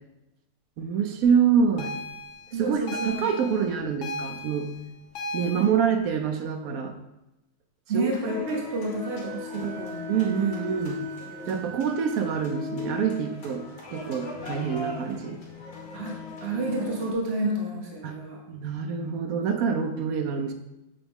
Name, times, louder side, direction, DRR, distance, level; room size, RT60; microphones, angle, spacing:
voice 1, 0.8-1.9 2.6-4.7 5.3-6.9 7.9-8.1 9.6-9.7 10.1-11.0 11.5-13.6 13.9-15.4 18.0-18.2 18.5-20.5, right 7 dB, 65° right, 6 dB, 0.9 m, -26 dB
sound 1, 1.8-5.6, left 2 dB, 65° left, 1.3 m, -36 dB
voice 2, 2.5-3.3 7.9-10.6 11.2-11.6 15.9-16.2 16.4-18.4, right 2 dB, 40° right, -1 dB, 1.1 m, -30 dB
sound 2, 8.1-17.1, left 4 dB, 80° left, 2.0 m, -38 dB
Wind instrument woodwind instrument, 9.0-12.5, right 9 dB, 45° left, 1.6 m, -45 dB
7.0 x 4.0 x 3.6 m, 0.96 s
omnidirectional pair, 2.0 m